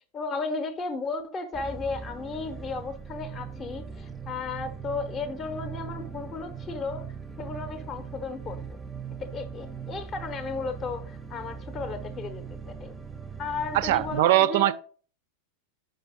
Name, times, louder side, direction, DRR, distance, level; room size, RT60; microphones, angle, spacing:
voice 1, 0.1-7.1 7.4-8.8 9.2-12.4 12.8-12.9 13.4-14.7, left 4 dB, 25° left, 0.7 m, -34 dB
sound 1, 1.5-14.2, right 6 dB, 10° right, 0.6 m, -40 dB
voice 2, 13.7-14.7, right 15 dB, 50° right, 0.4 m, -21 dB
5.4 x 5.3 x 3.5 m
figure-of-eight pair, 90°, 0 cm